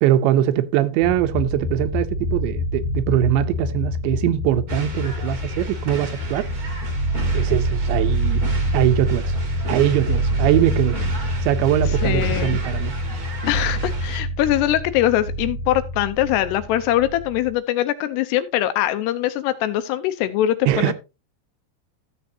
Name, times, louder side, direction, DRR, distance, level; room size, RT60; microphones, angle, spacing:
voice 1, 0.0-6.5 7.3-8.4 8.7-9.4 9.7-11.0 11.4-13.0 20.7-20.9, right 13 dB, 85° right, 2.9 m, -21 dB
sound 1, 1.0-17.5, equal, 60° left, 2.9 m, -26 dB
sound 2, 4.7-14.2, right 2 dB, 35° right, 1.4 m, -36 dB
voice 2, 12.0-12.6 13.5-20.9, left 13 dB, 80° left, 2.6 m, -22 dB
14.0 x 7.7 x 2.7 m
omnidirectional pair, 5.2 m